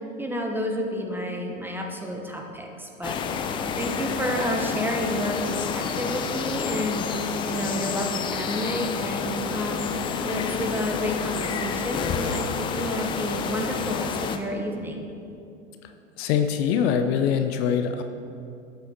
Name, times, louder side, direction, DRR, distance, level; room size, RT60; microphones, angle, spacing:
voice 1, 0.2-7.1 7.5-9.9 10.2-15.1, equal, 5° right, 2 dB, 1.2 m, -30 dB
sound 1, 3.0-14.4, left 6 dB, 15° left, 0.3 m, -29 dB
voice 2, 16.2-18.0, left 8 dB, 50° left, 7 dB, 0.8 m, -23 dB
12.0 x 8.2 x 4.4 m, 2.6 s
hypercardioid pair, 100°, 39 cm